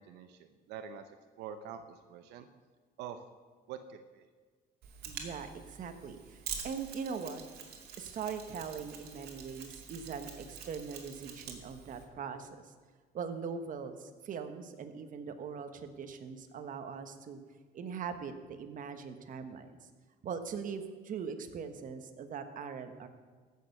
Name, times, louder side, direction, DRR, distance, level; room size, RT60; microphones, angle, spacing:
voice 1, 0.0-2.5 3.0-3.2 3.7-4.3, right 8 dB, 90° right, 8 dB, 0.7 m, -46 dB
Mechanisms, 4.8-12.0, right 7 dB, 70° right, 2.3 m, -46 dB
voice 2, 5.1-7.4 8.0-12.7 13.1-17.4 17.7-19.7 20.2-23.1, right 6 dB, 50° right, 7 dB, 1.3 m, -41 dB
15.0 x 6.7 x 6.7 m, 1.5 s
cardioid pair, 110°, 17 cm